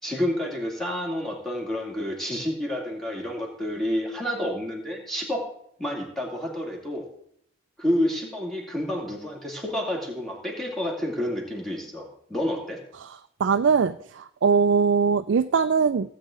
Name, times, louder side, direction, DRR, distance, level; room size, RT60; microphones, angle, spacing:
voice 1, 0.0-5.4 5.8-7.1 7.8-12.8, left 1 dB, ahead, -2 dB, 2.5 m, -29 dB
voice 2, 13.4-16.1, right 5 dB, 75° right, 9 dB, 0.4 m, -21 dB
16.5 x 8.4 x 3.8 m, 0.68 s
head